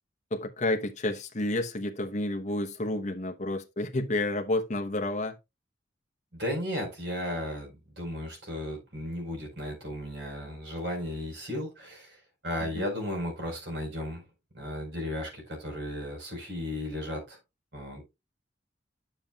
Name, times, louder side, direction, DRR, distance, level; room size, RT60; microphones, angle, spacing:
voice 1, 0.3-5.3 12.7-12.9, left 2 dB, 40° left, 0.9 m, -30 dB
voice 2, 6.3-12.2 12.4-14.2 14.5-17.4 17.7-18.0, equal, 70° right, 4.6 m, -35 dB
10.0 x 7.3 x 2.3 m
head